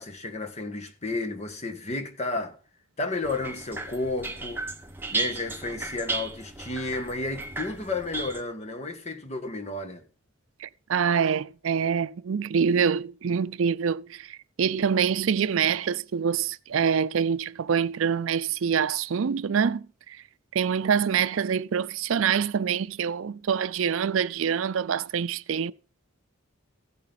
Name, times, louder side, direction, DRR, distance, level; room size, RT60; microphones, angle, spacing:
voice 1, 0.0-2.6 3.0-4.6 5.1-10.0, left 2 dB, 30° left, 1.5 m, -32 dB
sound 1, 3.2-8.4, right 3 dB, 10° right, 0.9 m, -35 dB
voice 2, 10.6-20.2 20.5-25.7, right 7 dB, 70° right, 0.4 m, -25 dB
15.0 x 8.5 x 4.0 m
head